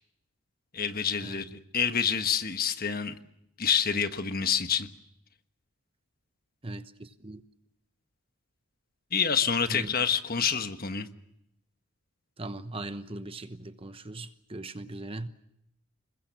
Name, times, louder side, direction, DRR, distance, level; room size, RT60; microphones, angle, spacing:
voice 1, 0.7-3.1 3.6-4.9 9.1-11.1, left 7 dB, 40° left, 1.4 m, -27 dB
voice 2, 6.6-7.4 9.7-9.9 12.4-15.3, right 2 dB, 25° right, 1.0 m, -39 dB
28.0 x 21.5 x 7.4 m
head